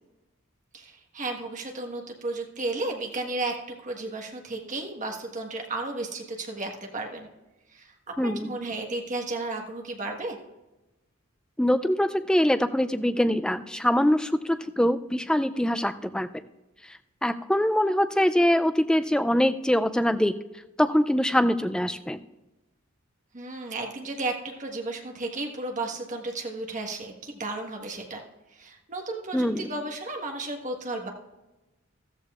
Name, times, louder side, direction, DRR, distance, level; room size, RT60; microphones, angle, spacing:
voice 1, 0.7-3.6 3.8-7.3 7.7-10.4 23.3-28.2 28.5-31.1, right 2 dB, 35° right, 2 dB, 1.4 m, -33 dB
voice 2, 8.2-8.5 11.6-16.3 17.2-20.3 20.8-22.2 29.3-29.7, equal, 5° left, 11 dB, 0.3 m, -23 dB
14.0 x 13.5 x 2.4 m, 1.1 s
head